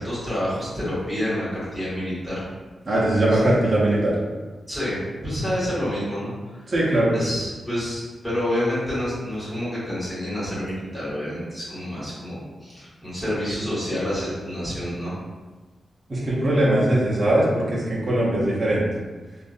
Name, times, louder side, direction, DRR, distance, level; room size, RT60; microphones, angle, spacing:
voice 1, 0.0-2.5 3.3-3.4 4.7-6.3 7.1-15.1, equal, 5° left, -11 dB, 1.4 m, -28 dB
voice 2, 2.9-4.1 6.7-7.1 16.1-18.8, right 1 dB, 30° right, -7 dB, 0.7 m, -20 dB
2.6 x 2.4 x 2.4 m, 1.3 s
wide cardioid pair, 120°, 0 cm